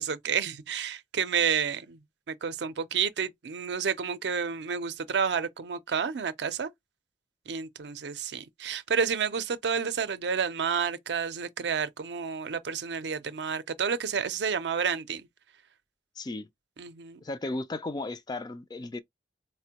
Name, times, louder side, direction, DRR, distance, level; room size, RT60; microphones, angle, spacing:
voice 1, 0.0-2.0 2.3-6.7 7.5-15.3 16.8-17.2, right 6 dB, 70° right, 0.5 m, -30 dB
voice 2, 16.2-16.5 17.2-19.0, left 2 dB, 25° left, 0.3 m, -35 dB
4.3 x 2.1 x 2.8 m
head